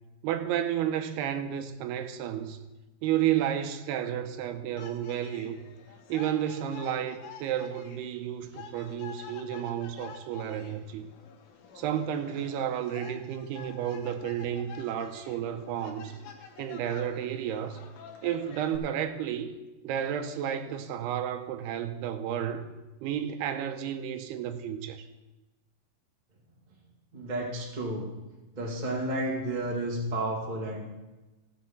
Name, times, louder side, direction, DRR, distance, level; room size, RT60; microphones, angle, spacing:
voice 1, 0.2-2.6 3.0-5.6 6.1-11.1 11.8-16.2 16.6-17.8 18.2-19.5 19.8-22.7 23.0-25.1, right 10 dB, 85° right, 2.7 m, -32 dB
sound 1, 4.8-18.8, left 7 dB, 70° left, 2.8 m, -48 dB
voice 2, 27.1-28.1 28.5-30.9, right 1 dB, 30° right, 0.7 m, -31 dB
14.5 x 6.3 x 5.9 m
omnidirectional pair, 4.7 m